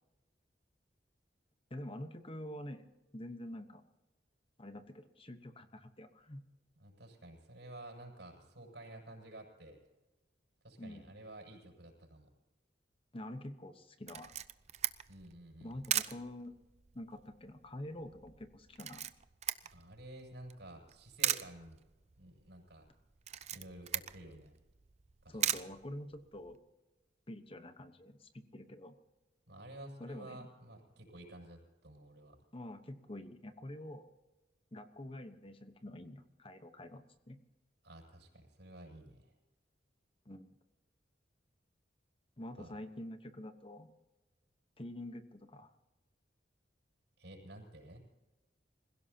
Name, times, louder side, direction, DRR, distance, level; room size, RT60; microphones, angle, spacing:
voice 1, 1.7-3.8 4.6-6.4 10.8-11.1 13.1-14.3 15.6-16.5 16.9-19.1 25.3-26.6 27.3-29.0 30.0-30.5 32.5-34.1 34.7-37.4 40.2-40.5 42.4-43.9 44.8-45.7, left 1 dB, 30° left, 9 dB, 1.1 m, -47 dB
voice 2, 6.8-9.8 10.6-12.3 15.1-15.8 19.7-21.8 22.2-22.9 23.5-24.5 25.2-25.6 29.5-32.4 37.8-39.3 42.6-42.7 47.2-48.0, right 1 dB, 70° right, -1 dB, 7.1 m, -52 dB
Camera, 14.1-26.6, right 10 dB, 40° right, 0.6 m, -40 dB
26.0 x 16.5 x 2.9 m, 1.1 s
head